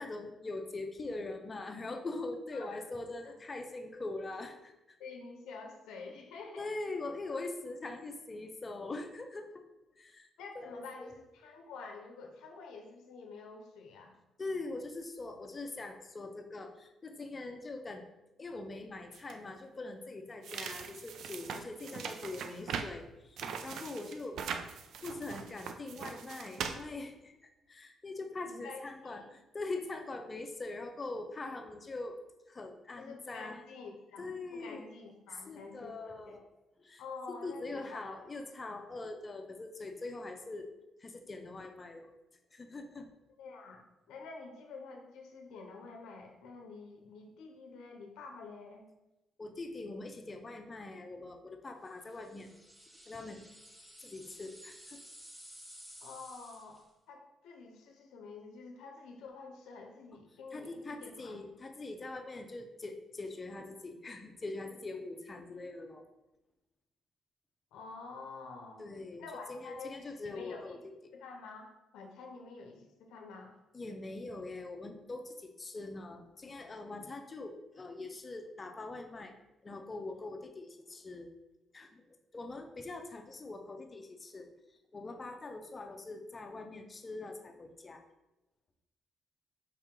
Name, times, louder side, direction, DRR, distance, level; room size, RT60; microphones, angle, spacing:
voice 1, 0.0-5.0 6.6-9.6 10.0-10.3 10.5-11.1 14.4-18.0 18.4-24.4 25.0-32.2 32.5-33.6 34.2-34.9 35.3-36.5 36.8-37.0 37.3-40.7 41.0-42.1 42.5-43.1 49.4-52.5 53.1-53.4 54.0-55.0 60.5-66.1 68.8-69.2 69.5-70.8 73.7-79.3 79.6-81.3 81.7-82.1 82.3-84.5 84.9-88.0, left 2 dB, 30° left, 5 dB, 0.6 m, -42 dB
voice 2, 5.0-6.7 10.4-14.2 28.5-29.3 33.0-36.4 37.0-38.2 43.4-43.8 44.1-48.8 56.0-56.8 57.1-61.4 67.7-68.9 69.2-70.8 71.1-73.5, left 4 dB, 90° left, 2 dB, 0.6 m, -48 dB
sound 1, 19.1-19.4 20.4-23.0 23.4-26.8, right 6 dB, 75° right, 0.3 m, -41 dB
sound 2, 52.1-56.9, equal, 10° right, 0.9 m, -54 dB
4.8 x 2.8 x 3.6 m, 0.98 s
cardioid pair, 90°, 0 cm